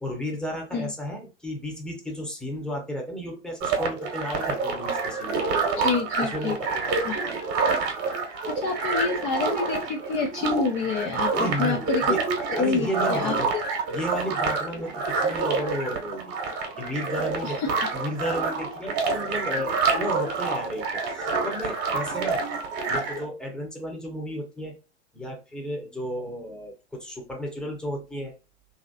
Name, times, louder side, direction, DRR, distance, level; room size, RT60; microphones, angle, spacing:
voice 1, 0.0-7.4 11.4-12.2 12.6-13.5 13.9-16.3 16.8-17.6 17.9-22.4 22.9-24.7 25.1-28.3, equal, ahead, 1 dB, 0.8 m, -33 dB
sound 1, 3.6-23.2, right 4 dB, 40° right, 1.0 m, -28 dB
voice 2, 5.8-6.5 7.0-7.2 8.5-12.1 12.5-13.6 17.4-17.7, left 5 dB, 35° left, 1 dB, 0.5 m, -28 dB
2.9 x 2.7 x 2.6 m, 0.31 s
hypercardioid pair, 100°, 36 cm